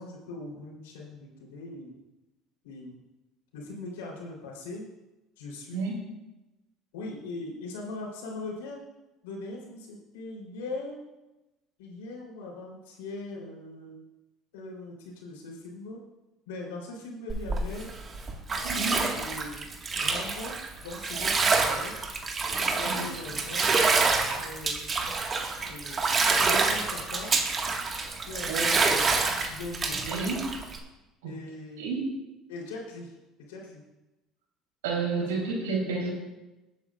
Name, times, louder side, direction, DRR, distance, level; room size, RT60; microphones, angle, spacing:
voice 1, 0.0-2.0 2.6-3.0 3.5-4.9 5.4-5.8 6.9-8.8 9.2-11.0 11.8-14.0 14.5-16.0 16.5-17.9 19.1-22.0 22.8-23.9 24.3-24.9 25.6-27.4 28.3-30.4 31.2-31.9 32.5-33.2 33.5-33.8 35.1-36.0, left 2 dB, 85° left, -2 dB, 3.5 m, -40 dB
Bathtub (filling or washing), 17.3-30.8, right 4 dB, 35° right, 1.7 m, -27 dB
voice 2, 18.6-19.0 22.8-23.0 28.4-28.6 30.0-30.4 31.2-31.3 31.8-32.1 34.8-36.1, right 4 dB, 85° right, -2 dB, 3.7 m, -30 dB
20.0 x 9.3 x 2.5 m, 1.0 s
hypercardioid pair, 75°, 0 cm